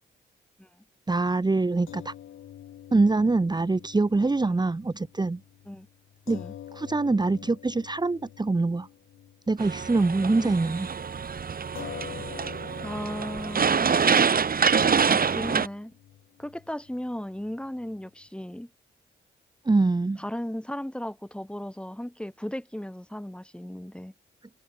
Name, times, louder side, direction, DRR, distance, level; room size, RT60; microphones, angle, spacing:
voice 1, 1.1-2.1 2.9-5.4 6.3-6.4 6.7-8.9 9.5-10.9 19.6-20.2, right 3 dB, 20° right, 1.1 m, -24 dB
sound 1, 1.9-10.4 10.7-10.9 11.7-18.3, left 11 dB, 80° left, 1.7 m, -47 dB
sound 2, 9.6-15.7, right 6 dB, 45° right, 1.5 m, -25 dB
voice 2, 12.8-13.9 15.1-16.0 16.4-18.7 20.2-24.1, left 1 dB, 5° left, 2.7 m, -36 dB
cardioid pair, 60°, 20 cm